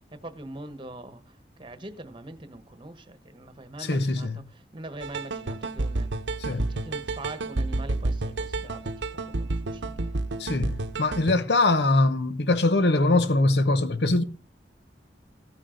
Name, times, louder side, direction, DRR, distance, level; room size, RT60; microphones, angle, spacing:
voice 1, 0.2-6.3 6.5-10.1, right 2 dB, 30° right, 1.2 m, -43 dB
voice 2, 3.8-4.4 6.4-6.7 10.4-14.2, left 2 dB, 70° left, 1.0 m, -23 dB
sound 1, 5.0-11.4, right 2 dB, 85° right, 0.9 m, -30 dB
15.0 x 9.4 x 3.9 m
head